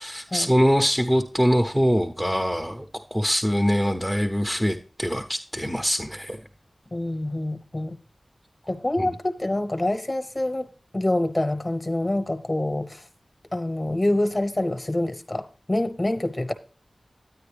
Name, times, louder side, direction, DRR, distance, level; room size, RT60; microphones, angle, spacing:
voice 1, 0.0-6.4 9.0-9.1, equal, 5° right, 0.7 m, -23 dB
voice 2, 6.9-8.0 8.7-10.7 10.9-13.0 13.5-16.5, left 1 dB, 30° left, 0.9 m, -26 dB
9.5 x 9.2 x 3.3 m
wide cardioid pair, 55°, 0 cm